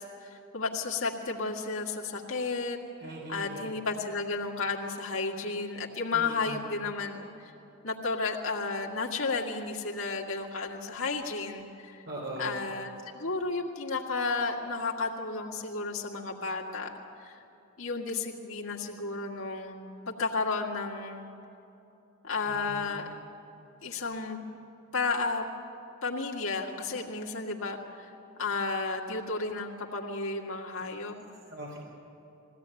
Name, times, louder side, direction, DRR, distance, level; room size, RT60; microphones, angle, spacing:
voice 1, 0.0-2.8 3.3-7.5 7.8-12.0 12.4-16.9 17.2-17.4 17.8-19.8 20.1-21.3 22.2-23.1 23.8-24.4 24.9-25.5 26.0-28.1 28.4-31.2, left 3 dB, 80° left, -1 dB, 2.0 m, -32 dB
voice 2, 3.0-3.7 6.1-6.6 12.1-12.6 22.5-23.1 31.5-31.8, right 1 dB, 60° right, -2 dB, 3.9 m, -40 dB
21.5 x 16.5 x 9.1 m, 2.9 s
head